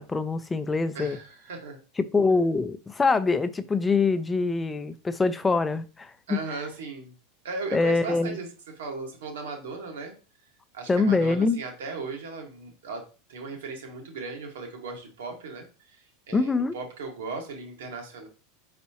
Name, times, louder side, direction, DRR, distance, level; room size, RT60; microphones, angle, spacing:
voice 1, 0.0-1.2 2.0-6.4 7.7-8.4 10.9-11.6 16.3-16.7, left 4 dB, 15° left, 0.5 m, -24 dB
voice 2, 0.9-1.8 6.3-7.1 7.4-10.1 10.7-13.0 13.3-18.3, right 4 dB, 80° right, 1.4 m, -37 dB
4.5 x 4.1 x 2.8 m
hypercardioid pair, 105°, 0 cm